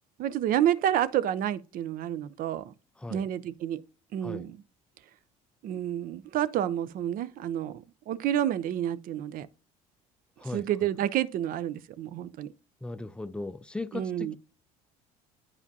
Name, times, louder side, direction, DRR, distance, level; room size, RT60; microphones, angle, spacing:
voice 1, 0.2-2.7 3.1-3.8 4.1-4.6 5.6-9.5 10.5-12.5 13.9-14.4, right 11 dB, 55° right, 0.5 m, -29 dB
voice 2, 3.0-3.3 4.2-4.5 10.4-10.7 12.8-14.4, left 2 dB, 5° left, 0.4 m, -37 dB
9.5 x 4.9 x 2.7 m
hypercardioid pair, 70°, 17 cm